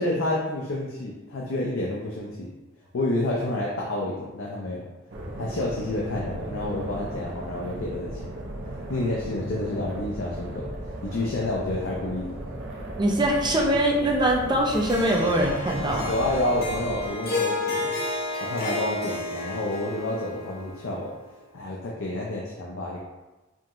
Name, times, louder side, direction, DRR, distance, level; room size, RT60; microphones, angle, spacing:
voice 1, 0.0-2.5 2.9-4.8 5.4-8.4 8.9-10.7 11.0-12.4 16.1-18.0 18.4-21.1 21.5-23.0, left 1 dB, 80° left, -4 dB, 0.6 m, -29 dB
sound 1, 5.1-17.1, right 1 dB, 65° right, 0.7 m, -36 dB
voice 2, 13.0-16.1, right 1 dB, 20° right, -1 dB, 0.6 m, -23 dB
Harp, 14.7-21.1, left 2 dB, 50° left, 0.8 m, -32 dB
4.9 x 2.9 x 2.5 m, 1.1 s
head